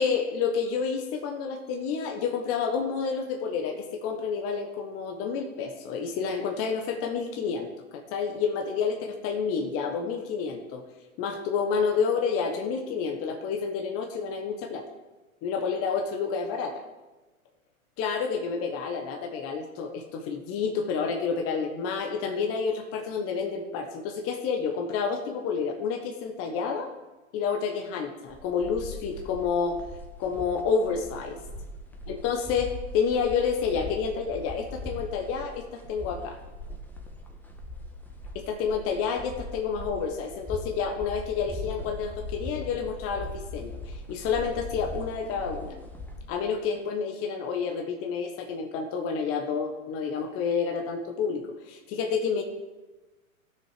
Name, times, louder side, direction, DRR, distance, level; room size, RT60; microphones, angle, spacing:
voice 1, 0.0-10.8 11.2-14.9 15.4-16.8 18.0-26.9 27.3-29.8 30.2-31.4 32.1-36.4 38.3-45.7 46.3-52.4, left 6 dB, 30° left, 4 dB, 1.2 m, -29 dB
Ambient city sounds walking people, 28.3-46.3, left 2 dB, 5° left, 1.2 m, -40 dB
14.5 x 6.4 x 5.0 m, 1.1 s
hypercardioid pair, 115°, 42 cm